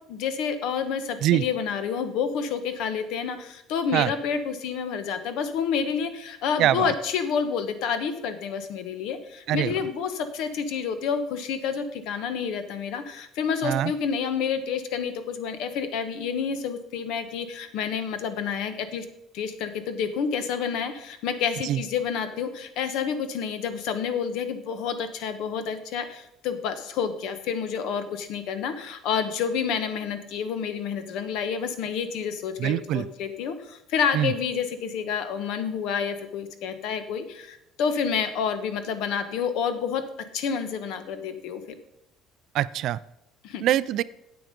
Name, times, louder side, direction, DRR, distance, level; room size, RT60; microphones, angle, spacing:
voice 1, 0.1-19.0 19.3-40.0 40.3-41.6 43.4-43.6, left 6 dB, 65° left, 10 dB, 1.1 m, -29 dB
voice 2, 6.6-6.9 9.5-9.7 13.6-13.9 21.6-21.8 32.6-33.1 34.1-34.3 42.5-43.0 43.6-44.0, right 13 dB, 50° right, 18 dB, 0.3 m, -23 dB
9.1 x 8.1 x 5.1 m, 0.80 s
cardioid pair, 170°, 0 cm